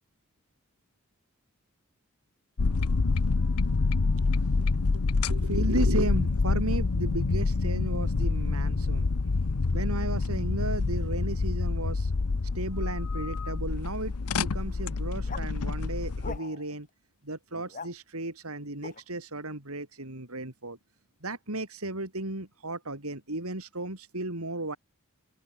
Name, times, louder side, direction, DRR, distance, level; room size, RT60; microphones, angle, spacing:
sound 1, 2.6-16.4, left 3 dB, 90° left, 0.8 m, -27 dB
voice 1, 4.3-4.6 4.9-9.1 9.7-12.1 12.5-16.9 17.2-20.8 21.2-24.8, right 2 dB, 75° right, 5.1 m, -34 dB
sound 2, 15.2-15.5 16.2-16.7 17.5-17.9 18.8-19.0, left 4 dB, 35° left, 3.4 m, -41 dB
open air
head